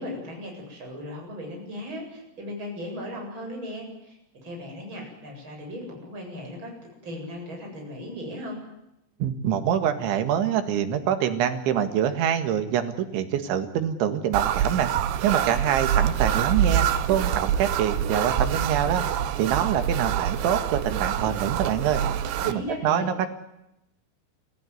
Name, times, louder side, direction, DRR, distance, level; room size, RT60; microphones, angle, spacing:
voice 1, 0.0-6.7 7.0-8.6 22.4-23.1, left 1 dB, 25° right, 1 dB, 8.5 m, -37 dB
voice 2, 9.2-14.9 15.2-19.0 19.4-22.0 22.5-23.3, right 9 dB, 90° right, 8 dB, 4.3 m, -25 dB
sound 1, 14.3-22.5, right 9 dB, 70° right, 2.9 m, -26 dB
30.0 x 15.5 x 9.6 m, 0.86 s
omnidirectional pair, 5.2 m